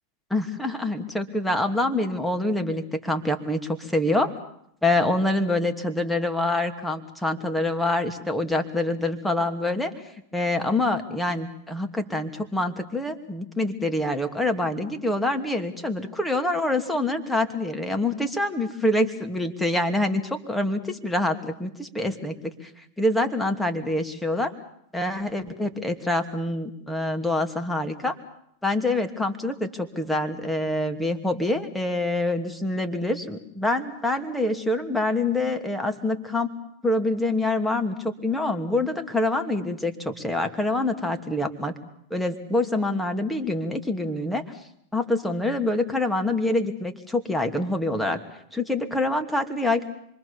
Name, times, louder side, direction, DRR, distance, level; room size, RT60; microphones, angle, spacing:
voice 1, 0.3-4.3 4.8-9.9 10.3-24.5 24.9-28.2 28.6-36.5 36.8-41.7 42.1-44.4 44.9-48.2 48.5-49.9, left 2 dB, 5° left, 6 dB, 2.8 m, -26 dB
26.5 x 24.0 x 7.2 m, 0.72 s
hypercardioid pair, 95°, 0 cm